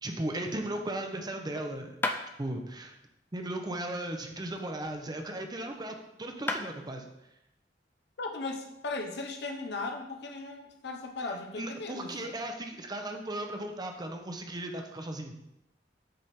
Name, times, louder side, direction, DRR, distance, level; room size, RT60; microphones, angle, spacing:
voice 1, 0.0-1.9 2.4-3.0 3.3-7.1 11.6-15.4, right 1 dB, 25° right, 4 dB, 0.7 m, -36 dB
sound 1, 2.0-2.3 4.2-5.5 6.1-6.2 6.5-6.7, left 2 dB, 10° left, 0.4 m, -35 dB
voice 2, 8.2-12.3, left 3 dB, 70° left, 3 dB, 0.8 m, -37 dB
7.6 x 3.5 x 4.3 m, 0.86 s
head